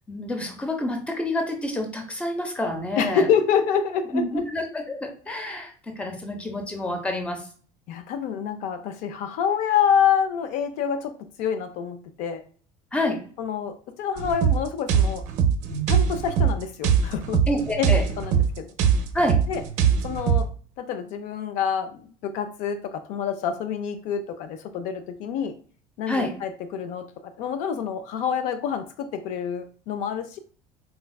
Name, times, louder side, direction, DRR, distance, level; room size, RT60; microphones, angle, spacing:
voice 1, 0.1-3.3 4.1-7.4 12.9-13.2 15.7-15.9 17.5-18.0 19.1-19.4 26.1-26.3, left 1 dB, 10° left, 4 dB, 0.6 m, -28 dB
voice 2, 3.0-4.5 7.9-11.1 11.4-12.4 13.4-15.2 15.9-17.4 17.8-18.7 19.5-19.6 20.0-20.5 20.8-25.5 26.0-30.4, left 7 dB, 60° left, 9 dB, 0.4 m, -27 dB
sound 1, 14.2-20.5, right 7 dB, 55° right, 0.5 m, -22 dB
4.2 x 2.3 x 2.2 m, 0.43 s
cardioid pair, 140°, 15 cm